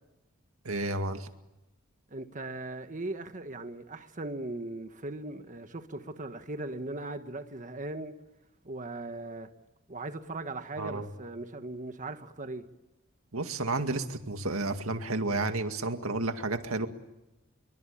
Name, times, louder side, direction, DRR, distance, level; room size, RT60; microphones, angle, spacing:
voice 1, 0.6-1.3 10.8-11.1 13.3-16.9, right 2 dB, 90° right, 2.1 m, -31 dB
voice 2, 2.1-8.1 8.6-9.5 9.9-12.7, right 2 dB, 40° right, 1.5 m, -39 dB
27.5 x 24.0 x 8.7 m
head